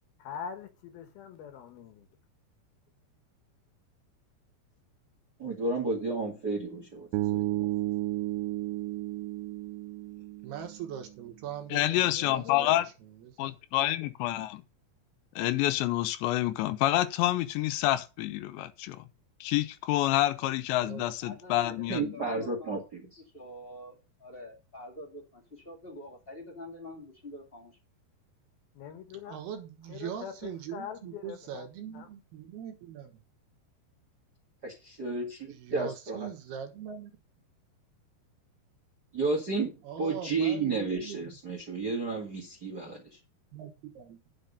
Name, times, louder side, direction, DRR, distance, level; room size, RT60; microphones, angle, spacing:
voice 1, 0.2-2.1 12.1-12.7 28.7-29.4 29.9-31.7 31.9-32.1, left 8 dB, 70° left, 2.8 m, -43 dB
voice 2, 5.4-7.7 21.9-23.1 34.6-36.3 39.1-39.7 40.0-43.0, right 3 dB, 40° right, 1.5 m, -32 dB
Bass guitar, 7.1-11.2, right 17 dB, 90° right, 3.0 m, -33 dB
voice 3, 10.4-13.6 20.8-21.3 29.3-33.2 35.5-37.1 39.8-41.3 43.5-44.2, right 8 dB, 70° right, 3.1 m, -42 dB
voice 4, 11.7-12.9 13.4-14.6 15.4-19.0 19.4-22.1, left 15 dB, 85° left, 3.0 m, -28 dB
voice 5, 21.2-22.7 23.3-27.8, left 1 dB, 25° left, 1.3 m, -46 dB
10.5 x 6.4 x 5.3 m
omnidirectional pair, 5.1 m